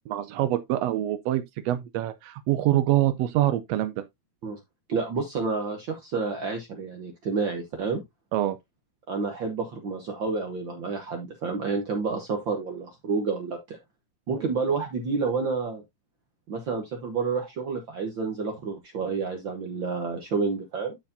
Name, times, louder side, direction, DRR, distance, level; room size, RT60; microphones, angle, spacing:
voice 1, 0.1-4.0 8.3-8.6 14.3-14.4, right 13 dB, 90° right, 1.4 m, -25 dB
voice 2, 4.9-8.0 9.1-13.8 14.3-15.8 16.5-21.0, right 4 dB, 60° right, 1.2 m, -29 dB
12.5 x 4.7 x 2.6 m
omnidirectional pair, 3.6 m